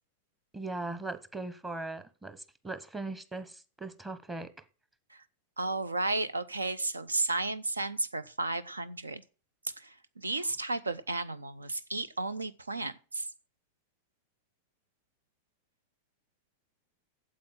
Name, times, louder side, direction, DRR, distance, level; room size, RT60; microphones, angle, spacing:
voice 1, 0.5-4.5, right 2 dB, 10° right, 1.1 m, -39 dB
voice 2, 5.6-9.2 9.8-13.3, right 2 dB, 80° right, 0.7 m, -33 dB
8.6 x 7.6 x 7.5 m
figure-of-eight pair, 90°, 0 cm